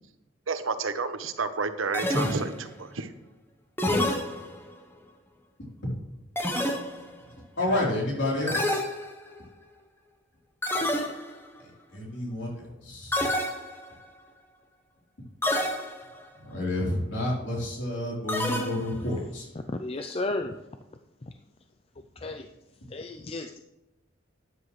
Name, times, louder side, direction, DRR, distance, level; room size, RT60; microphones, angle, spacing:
voice 1, 0.5-3.1, right 4 dB, 90° right, 10 dB, 1.0 m, -30 dB
sound 1, 1.9-2.8 3.8-4.8 6.4-7.2 8.5-9.5 10.6-11.5 13.1-14.0 15.4-16.2 18.3-19.1, left 1 dB, 10° left, 1.0 m, -28 dB
voice 2, 7.6-8.8 11.9-13.2 16.4-19.5, left 1 dB, 60° left, -3 dB, 3.8 m, -30 dB
voice 3, 19.7-20.6 21.2-21.4 22.2-22.5 22.9-23.6, left 2 dB, 30° left, 7 dB, 0.4 m, -33 dB
13.0 x 9.8 x 3.2 m, 0.96 s
head